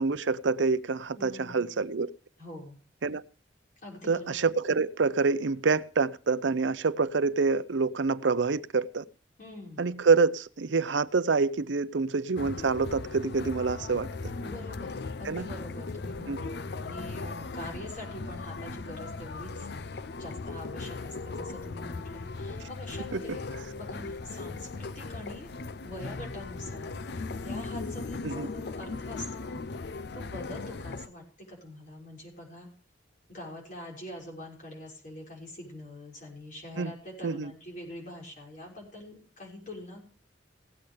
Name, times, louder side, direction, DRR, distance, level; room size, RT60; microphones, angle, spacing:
voice 1, 0.0-2.1 3.0-3.2 4.1-9.0 9.8-14.1 15.2-15.4 16.3-16.4 23.1-23.2 28.2-28.5 36.8-36.9 37.2-37.5, right 4 dB, 75° right, 0.6 m, -27 dB
voice 2, 1.2-1.6 2.4-2.8 3.8-4.5 9.4-9.9 14.4-19.7 20.2-25.5 25.8-27.0 27.4-29.6 30.1-32.7 33.3-40.1, left 1 dB, 45° left, 6.1 m, -44 dB
sound 1, 12.4-31.1, left 3 dB, 60° left, 0.5 m, -38 dB
17.0 x 8.6 x 5.1 m
head